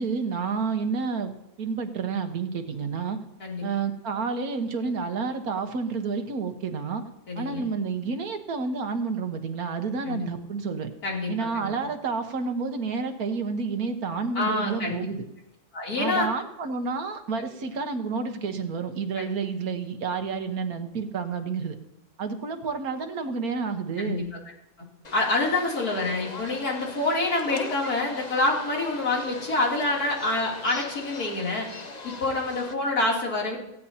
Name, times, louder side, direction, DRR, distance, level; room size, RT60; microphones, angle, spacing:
voice 1, 0.0-1.3 1.6-3.2 3.6-7.0 7.4-10.9 11.3-15.2 16.0-21.8 22.2-24.2, right 5 dB, 75° right, 6 dB, 1.7 m, -30 dB
voice 2, 7.3-7.7 10.0-10.3 11.0-11.7 14.4-15.1 15.7-16.3 17.4-17.5 19.2-19.3 24.0-24.3 25.1-31.7 32.0-33.6, left 2 dB, 80° left, -3 dB, 3.7 m, -27 dB
sound 1, 25.0-32.7, left 3 dB, 35° left, 0.9 m, -40 dB
18.0 x 15.5 x 2.9 m, 0.86 s
omnidirectional pair, 1.6 m